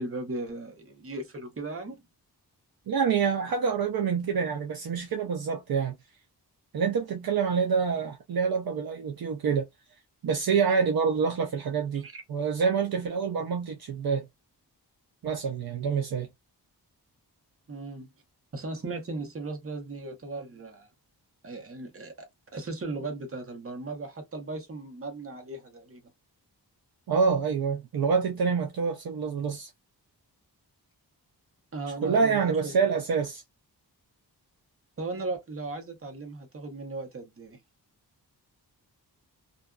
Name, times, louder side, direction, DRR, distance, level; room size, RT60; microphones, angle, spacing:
voice 1, 0.0-2.0 12.0-12.2 17.7-18.1 18.5-20.9 21.4-22.1 22.5-26.0 31.7-32.8 35.0-37.6, right 3 dB, 35° right, 0.8 m, -37 dB
voice 2, 2.9-5.9 6.7-9.7 10.2-14.3 15.2-16.3 27.1-29.7 32.0-33.4, right 6 dB, 60° right, 0.6 m, -27 dB
2.5 x 2.3 x 2.3 m
wide cardioid pair, 95°, 40 cm